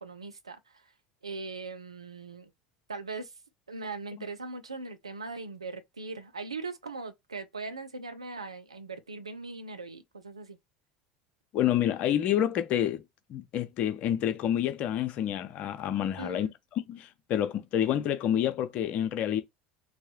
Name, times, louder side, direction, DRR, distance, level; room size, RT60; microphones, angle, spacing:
voice 1, 0.0-0.9 1.2-2.5 2.9-3.3 3.7-10.6 16.2-16.5, right 3 dB, 85° right, 0.5 m, -40 dB
voice 2, 11.5-13.0 13.3-16.5 16.9-19.4, left 10 dB, 45° left, 0.7 m, -28 dB
3.1 x 2.8 x 2.8 m
figure-of-eight pair, 70°, 3 cm